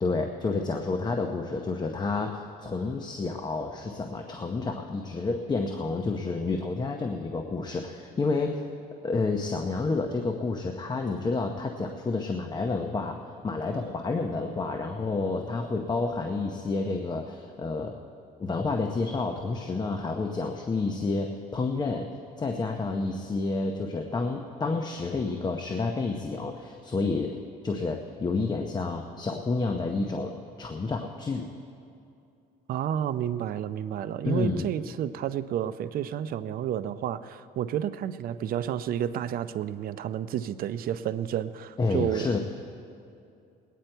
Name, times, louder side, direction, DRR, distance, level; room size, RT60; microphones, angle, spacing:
voice 1, 0.0-8.7 9.0-17.9 18.4-22.1 22.4-27.4 27.6-31.5 34.2-34.7 41.8-42.4, left 3 dB, 25° left, 4 dB, 0.8 m, -29 dB
voice 2, 32.7-42.3, right 10 dB, 60° right, 13 dB, 0.5 m, -30 dB
20.5 x 9.3 x 4.5 m, 2.6 s
cardioid pair, 110°, 17 cm